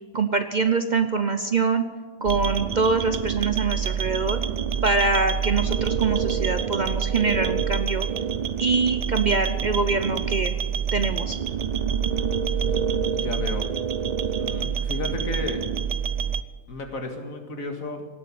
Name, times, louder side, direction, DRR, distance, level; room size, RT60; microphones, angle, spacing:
voice 1, 0.1-1.8 2.2-4.4 4.8-8.1 8.6-10.5 10.9-11.4, right 4 dB, 45° right, 8 dB, 0.7 m, -24 dB
sound 1, 2.2-16.4, right 7 dB, 85° right, 0.3 m, -27 dB
voice 2, 13.1-13.7 14.4-15.6 16.7-18.1, left 2 dB, 80° left, 4 dB, 2.3 m, -32 dB
18.0 x 7.9 x 8.6 m, 1.4 s
omnidirectional pair, 1.4 m